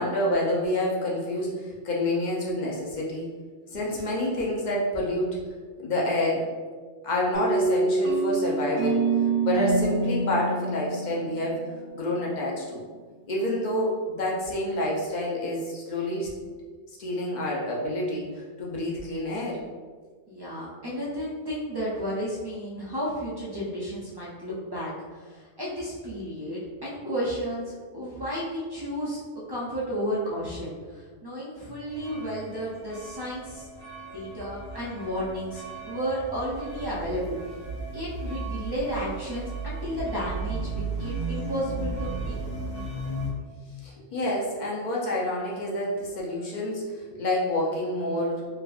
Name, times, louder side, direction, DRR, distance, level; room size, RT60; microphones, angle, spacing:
voice 1, 0.0-3.3 3.7-5.4 5.8-6.5 7.0-9.0 9.4-11.6 11.9-12.8 13.3-16.3 17.0-19.6 43.8-48.5, left 1 dB, 50° left, -4 dB, 0.6 m, -28 dB
sound 1, 7.3-12.0, right 3 dB, 75° right, 1.0 m, -26 dB
voice 2, 20.3-29.2 29.5-33.7 34.0-37.4 37.9-42.8, equal, 40° right, -8 dB, 0.3 m, -33 dB
sound 2, 31.9-43.3, right 3 dB, 75° left, 1.5 m, -35 dB
3.3 x 2.4 x 2.3 m, 1.5 s
omnidirectional pair, 1.2 m